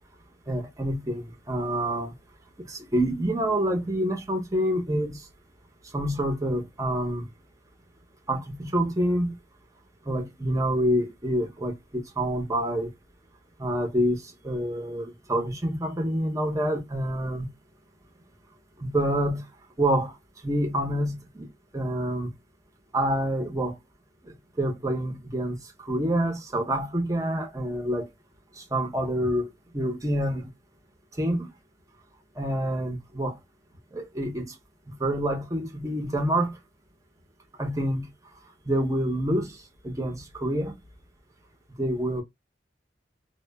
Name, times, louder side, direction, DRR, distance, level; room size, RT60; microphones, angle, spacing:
voice 1, 0.5-2.1 2.7-5.2 5.9-7.3 8.3-9.3 10.1-12.9 13.6-17.5 18.8-19.5 19.8-20.1 20.4-21.5 21.7-22.3 22.9-23.8 24.6-28.1 28.6-29.5 29.7-30.5 31.2-31.5 32.4-33.4 33.9-34.5 35.0-36.6 37.6-38.1 38.7-39.5 39.8-40.7 41.8-42.2, right 1 dB, 20° right, 0.6 m, -27 dB
2.1 x 2.1 x 3.2 m
head